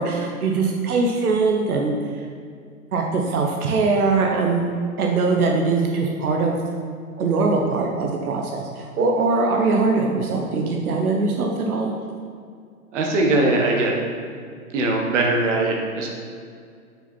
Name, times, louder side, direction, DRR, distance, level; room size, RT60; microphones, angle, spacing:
voice 1, 0.0-1.9 2.9-4.6 5.0-6.6 7.2-11.9, right 3 dB, 90° right, 1 dB, 1.0 m, -21 dB
voice 2, 12.9-14.0 14.7-16.1, right 2 dB, 55° right, 0 dB, 1.4 m, -20 dB
5.8 x 5.6 x 4.3 m, 2.3 s
hypercardioid pair, 150°, 43 cm